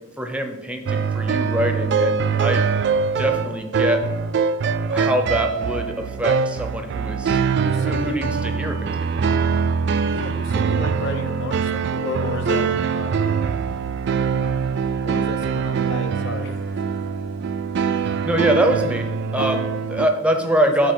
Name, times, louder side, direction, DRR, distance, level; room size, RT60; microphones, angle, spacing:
voice 1, 0.2-2.6 3.2-4.0 4.9-7.4 7.7-9.3 18.2-20.9, right 1 dB, 5° right, 5 dB, 0.6 m, -24 dB
sound 1, 0.9-20.1, right 5 dB, 55° right, 0.3 m, -23 dB
voice 2, 7.3-8.3 10.1-13.3 15.0-16.8 19.4-19.7 20.7-20.9, left 3 dB, 60° left, 8 dB, 0.6 m, -33 dB
8.2 x 2.8 x 6.0 m, 1.1 s
head